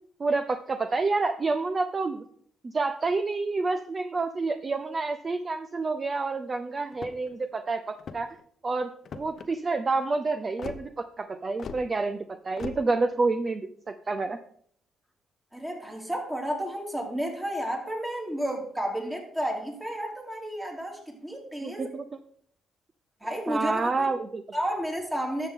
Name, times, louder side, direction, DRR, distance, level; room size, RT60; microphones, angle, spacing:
voice 1, 0.2-2.2 2.6-8.3 8.6-14.4 21.6-22.0 23.5-24.4, right 3 dB, 35° right, 9 dB, 0.6 m, -28 dB
sound 1, 6.9-7.4 7.9-8.4 9.0-9.5 10.6-10.8 11.6-11.8 12.6-12.8, left 6 dB, 55° left, 0.8 m, -39 dB
voice 2, 15.5-21.9 23.2-24.1 24.5-25.5, equal, 10° right, 0 dB, 2.9 m, -32 dB
12.0 x 7.3 x 3.7 m, 0.63 s
cardioid pair, 90°, 0 cm